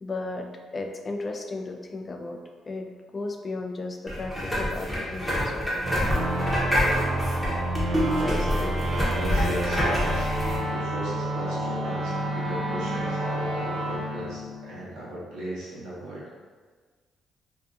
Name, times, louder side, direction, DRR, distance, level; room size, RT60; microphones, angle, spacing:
voice 1, 0.0-6.5, left 2 dB, 30° left, 4 dB, 0.3 m, -35 dB
sound 1, 4.1-10.6, equal, 5° left, 0.8 m, -27 dB
sound 2, 5.8-15.2, right 1 dB, 60° right, 0.3 m, -29 dB
voice 2, 7.9-16.3, right 1 dB, 90° right, -8 dB, 0.9 m, -37 dB
2.5 x 2.3 x 2.4 m, 1.5 s
cardioid pair, 90°, 0 cm